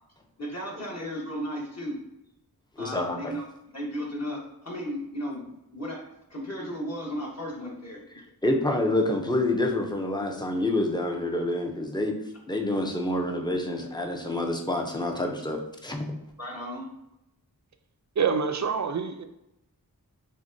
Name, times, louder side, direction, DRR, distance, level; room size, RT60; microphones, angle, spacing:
voice 1, 0.4-2.0 2.8-3.4 3.7-6.0 6.3-8.0 16.4-16.8, equal, 40° left, -4 dB, 1.3 m, -35 dB
voice 2, 2.8-3.3 8.4-12.2 12.5-16.1, left 1 dB, 10° left, 2 dB, 0.6 m, -27 dB
voice 3, 18.2-19.3, right 6 dB, 50° right, 8 dB, 0.4 m, -26 dB
6.0 x 2.2 x 2.6 m, 0.86 s
wide cardioid pair, 50°, 38 cm